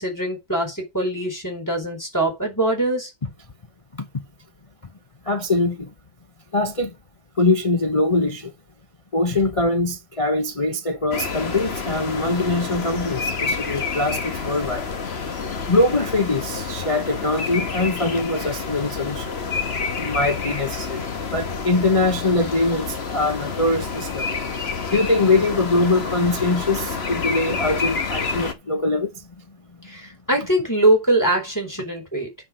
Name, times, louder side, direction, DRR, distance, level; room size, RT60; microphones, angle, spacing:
voice 1, 0.0-3.1 29.8-32.3, right 1 dB, 10° left, 4.5 m, -22 dB
voice 2, 5.2-5.9 6.5-7.0 7.4-8.5 9.1-14.9 15.7-19.3 20.0-24.3 24.9-29.2, left 2 dB, 55° left, 0.3 m, -22 dB
sound 1, 11.1-28.5, left 5 dB, 35° left, 1.3 m, -28 dB
9.9 x 4.9 x 6.3 m
omnidirectional pair, 2.1 m